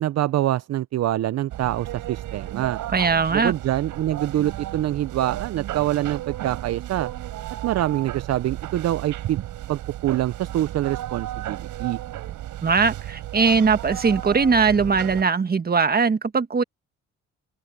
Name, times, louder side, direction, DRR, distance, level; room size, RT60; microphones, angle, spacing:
voice 1, 0.0-2.8 3.3-7.1 7.6-9.4 9.7-12.0, right 13 dB, 60° right, 0.6 m, -25 dB
sound 1, 1.5-15.2, right 13 dB, 85° right, 7.4 m, -34 dB
voice 2, 2.9-3.5 12.6-16.6, right 5 dB, 30° right, 1.5 m, -20 dB
open air
cardioid pair, 90°, 30 cm